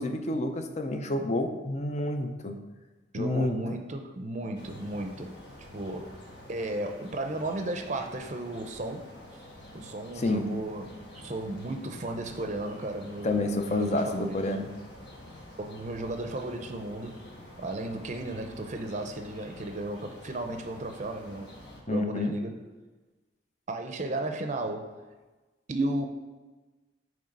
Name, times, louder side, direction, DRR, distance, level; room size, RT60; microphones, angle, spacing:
voice 1, 0.0-2.6 3.1-3.8 10.2-10.4 13.2-14.7 21.9-22.3, left 2 dB, 40° left, 6 dB, 0.6 m, -29 dB
voice 2, 3.1-5.4 5.7-6.2 6.5-9.1 9.7-14.4 15.6-17.2 17.6-21.5 21.9-22.6 23.7-24.9 25.7-26.1, right 2 dB, 40° right, 4 dB, 0.6 m, -34 dB
sound 1, 4.6-21.8, left 1 dB, 65° left, 1.4 m, -48 dB
8.8 x 3.2 x 5.3 m, 1.2 s
head